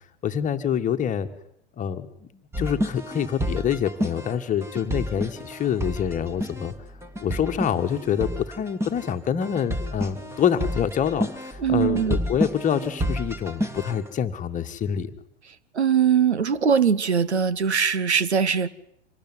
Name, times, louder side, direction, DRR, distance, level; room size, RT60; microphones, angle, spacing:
voice 1, 0.2-1.3 1.8-2.3 2.6-6.7 7.2-15.1, left 8 dB, 25° left, 8 dB, 1.8 m, -26 dB
sound 1, 2.5-14.1, equal, 10° right, 2.4 m, -30 dB
voice 2, 11.6-12.1 15.7-18.7, right 7 dB, 75° right, 16 dB, 1.2 m, -21 dB
25.5 x 19.5 x 9.7 m, 0.77 s
figure-of-eight pair, 95°, 33 cm